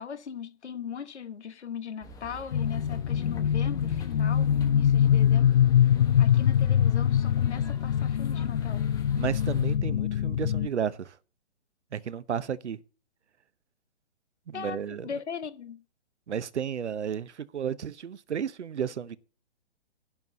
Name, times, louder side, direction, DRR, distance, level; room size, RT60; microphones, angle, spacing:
voice 1, 0.0-5.5 6.2-8.9 14.5-15.8, left 7 dB, 70° left, 1.3 m, -39 dB
sound 1, 2.0-9.8, right 1 dB, 10° left, 1.1 m, -45 dB
sound 2, 2.5-10.7, left 9 dB, 50° left, 0.4 m, -24 dB
voice 2, 9.2-11.2 11.9-12.8 14.5-15.1 16.3-19.2, right 8 dB, 75° right, 0.9 m, -33 dB
11.0 x 4.6 x 7.7 m
hypercardioid pair, 135°, 35 cm